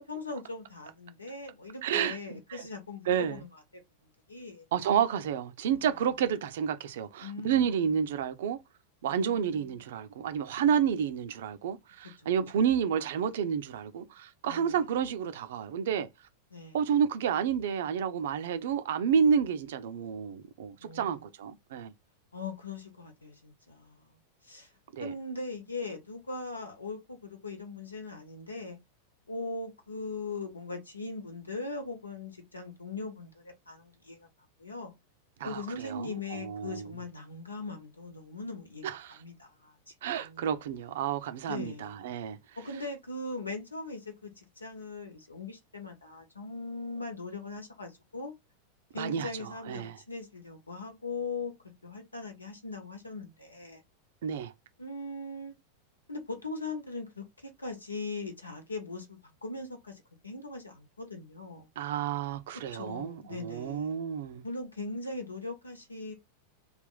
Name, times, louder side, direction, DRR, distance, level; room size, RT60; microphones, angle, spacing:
voice 1, 0.1-3.5 4.3-4.6 5.8-5.9 7.2-7.8 9.0-9.7 12.2-12.3 14.4-14.8 16.5-16.8 20.8-21.2 22.3-24.7 25.0-28.8 29.3-34.3 34.6-34.9 35.4-38.8 39.2-40.5 41.5-42.1 42.6-48.3 48.9-51.5 51.8-53.8 54.8-55.5 56.1-61.7 62.7-64.0 64.4-66.1, left 3 dB, 80° left, 1.1 m, -40 dB
voice 2, 1.8-2.7 3.1-3.4 4.7-8.6 9.0-16.1 16.7-21.9 24.9-25.1 35.4-36.8 38.8-39.2 40.0-42.4 49.0-50.0 54.2-54.5 61.8-64.4, right 8 dB, 55° right, 0.6 m, -30 dB
3.4 x 2.5 x 3.8 m
figure-of-eight pair, 90°, 0 cm